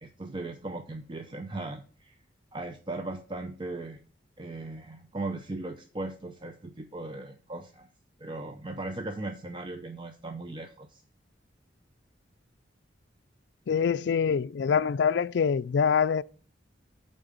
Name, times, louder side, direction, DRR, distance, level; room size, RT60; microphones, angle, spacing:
voice 1, 0.0-2.1 2.5-4.0 4.4-7.9 8.2-11.0, right 2 dB, 25° right, 0.6 m, -38 dB
voice 2, 13.7-16.2, left 6 dB, 65° left, 0.3 m, -25 dB
8.8 x 3.9 x 7.0 m
head